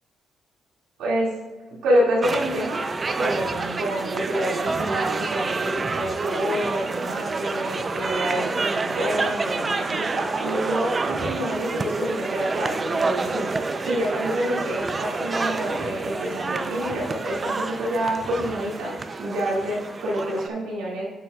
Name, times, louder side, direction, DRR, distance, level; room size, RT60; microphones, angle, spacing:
voice 1, 1.0-1.4 1.7-2.8 3.2-13.5 13.8-21.1, equal, 85° right, -4 dB, 2.2 m, -27 dB
sound 1, 2.2-20.5, right 3 dB, 30° right, 0.5 m, -28 dB
8.3 x 7.3 x 2.4 m, 1.3 s
cardioid pair, 90°, 0 cm